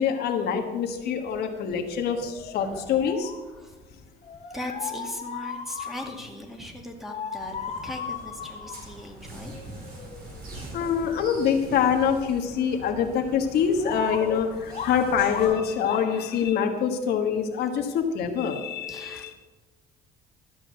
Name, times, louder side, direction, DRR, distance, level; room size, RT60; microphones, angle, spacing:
voice 1, 0.0-3.3 10.7-19.3, left 7 dB, 70° left, 4 dB, 1.5 m, -25 dB
sound 1, 0.6-0.7 1.0-6.3 7.1-9.0 9.3-10.6 10.9-11.0 11.3-11.4 11.7-12.4 12.9-13.0 13.8-16.5, left 6 dB, 45° left, 2.2 m, -37 dB
voice 2, 4.5-9.7 10.6-10.7 18.9-19.4, left 1 dB, ahead, 2 dB, 2.0 m, -39 dB
sound 2, 7.3-15.5, right 2 dB, 65° right, 5.0 m, -43 dB
13.0 x 7.5 x 6.6 m, 1.2 s
cardioid pair, 110°, 17 cm